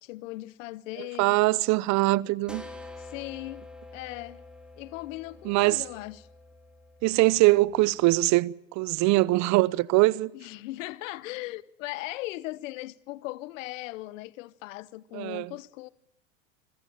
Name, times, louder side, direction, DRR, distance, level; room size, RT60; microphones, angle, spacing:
voice 1, 0.0-1.4 3.0-3.6 3.9-4.4 4.8-6.3 10.3-15.9, left 18 dB, 75° left, 0.8 m, -38 dB
voice 2, 1.2-2.6 5.4-5.8 7.0-10.3 15.1-15.5, right 20 dB, 45° right, 0.8 m, -22 dB
sound 1, 2.5-7.9, left 2 dB, ahead, 2.6 m, -47 dB
26.0 x 16.0 x 8.8 m
supercardioid pair, 115°, 39 cm